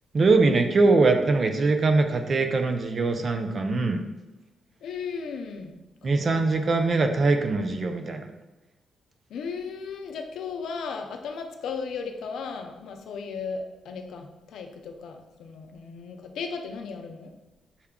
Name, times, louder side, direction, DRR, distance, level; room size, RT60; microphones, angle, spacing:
voice 1, 0.1-4.0 6.0-8.3, right 3 dB, 40° right, 5 dB, 0.4 m, -22 dB
voice 2, 4.8-5.8 6.3-6.4 6.7-6.9 9.3-17.3, left 5 dB, 80° left, 4 dB, 0.5 m, -36 dB
5.6 x 2.3 x 3.6 m, 1.0 s
cardioid pair, 115°, 0 cm